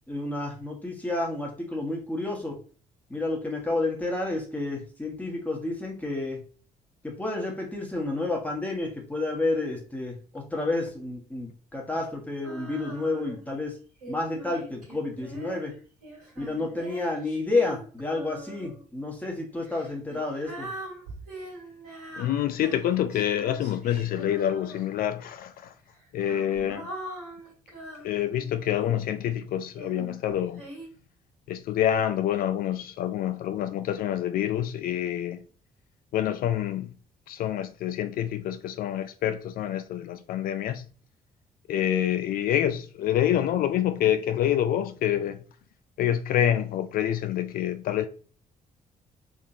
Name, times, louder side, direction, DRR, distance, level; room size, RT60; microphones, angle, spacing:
voice 1, 0.1-2.6 3.1-6.4 7.0-13.8 14.1-15.7 16.4-20.7, left 2 dB, 5° left, 1.3 m, -30 dB
Female singing, 12.4-13.5 14.0-18.8 19.6-25.2 25.9-29.1 29.7-30.9, right 1 dB, 80° right, 1.9 m, -43 dB
voice 2, 22.1-25.7 26.1-26.9 28.0-30.6 31.5-35.4 36.1-37.0 37.3-40.9 41.7-45.4 46.0-48.1, left 11 dB, 45° left, 0.4 m, -27 dB
3.9 x 3.6 x 2.7 m
figure-of-eight pair, 45°, 20 cm